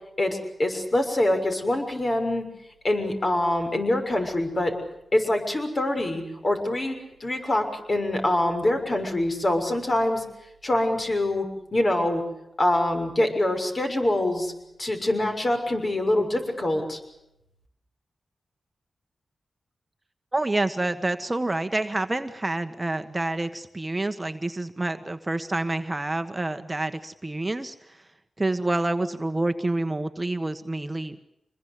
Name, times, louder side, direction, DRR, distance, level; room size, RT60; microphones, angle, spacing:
voice 1, 0.2-2.5 2.8-4.7 5.1-10.2 10.6-11.5 11.7-12.2 12.6-14.5 14.8-17.0, left 1 dB, 40° left, 5 dB, 6.5 m, -24 dB
voice 2, 20.3-28.0 28.4-31.2, right 2 dB, 20° right, 8 dB, 1.3 m, -28 dB
26.0 x 21.5 x 8.4 m, 0.83 s
cardioid pair, 65°, 0 cm